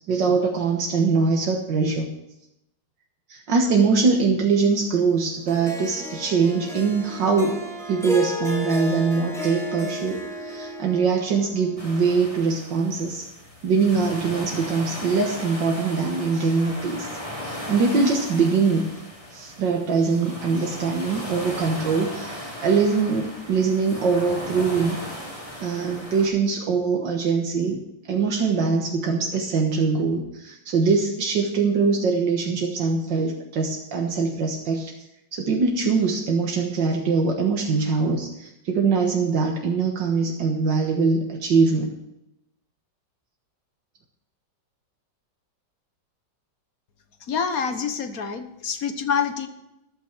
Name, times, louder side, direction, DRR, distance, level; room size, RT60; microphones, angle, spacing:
voice 1, 0.1-2.1 3.3-7.6 7.9-13.3 13.6-18.9 19.3-25.0 25.6-27.8 28.1-34.9 35.3-41.9, right 4 dB, 80° right, 1 dB, 2.1 m, -22 dB
Harp, 5.5-11.8, left 2 dB, ahead, 2.5 m, -33 dB
sound 1, 11.8-26.3, equal, 20° left, 3.6 m, -37 dB
voice 2, 47.2-49.5, left 6 dB, 55° left, 9 dB, 1.6 m, -26 dB
14.0 x 12.0 x 4.5 m, 0.87 s
omnidirectional pair, 1.9 m